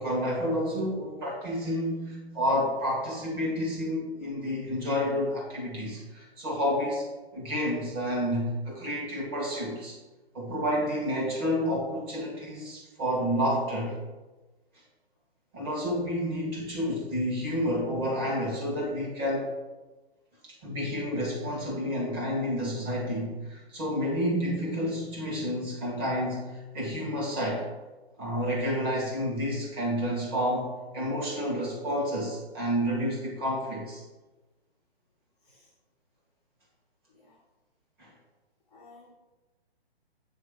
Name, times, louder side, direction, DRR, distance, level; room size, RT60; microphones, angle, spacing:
voice 1, 0.0-7.1 7.3-10.0 10.3-14.0 15.5-19.5 20.4-27.7 28.2-34.0 38.0-38.1, equal, 25° right, -4 dB, 1.5 m, -30 dB
voice 2, 38.7-39.1, left 3 dB, 10° left, -10 dB, 0.6 m, -55 dB
7.5 x 3.2 x 4.9 m, 1.2 s
hypercardioid pair, 160°, 32 cm